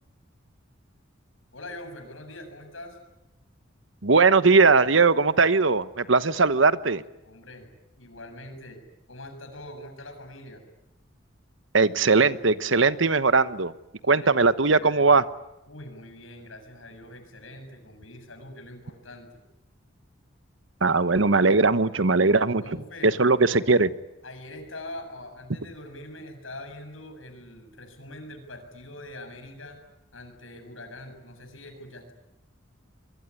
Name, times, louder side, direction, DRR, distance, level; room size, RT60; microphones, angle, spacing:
voice 1, 1.5-3.0 6.2-6.3 7.2-7.7 8.0-8.8 9.1-10.6 14.0-14.3 14.7-15.2 15.7-19.4 22.6-23.2 23.5-23.7 24.2-29.8 30.1-32.1, left 1 dB, 85° left, 6 dB, 7.4 m, -43 dB
voice 2, 4.0-7.0 11.7-13.7 14.1-15.2 20.8-22.6 23.0-23.9, right 4 dB, 70° right, 14 dB, 1.2 m, -19 dB
25.5 x 23.5 x 9.8 m, 0.92 s
head